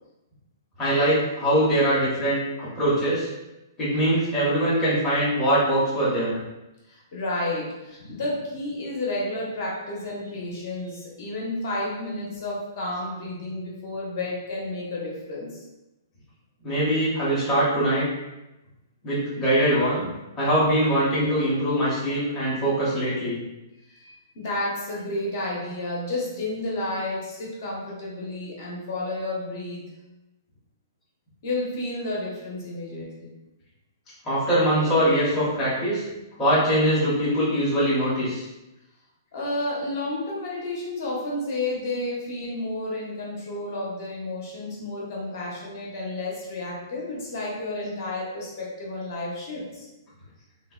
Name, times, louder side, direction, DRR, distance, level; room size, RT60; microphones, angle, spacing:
voice 1, 0.8-3.3 3.8-6.4 16.6-18.1 19.0-20.1 20.4-23.4 34.2-36.0 36.4-38.4, right 1 dB, 15° left, -10 dB, 0.7 m, -22 dB
voice 2, 6.9-15.6 23.9-29.9 31.4-33.3 39.3-49.9, left 2 dB, 45° left, -4 dB, 0.8 m, -31 dB
3.2 x 2.1 x 2.3 m, 0.99 s
hypercardioid pair, 165°, 2 cm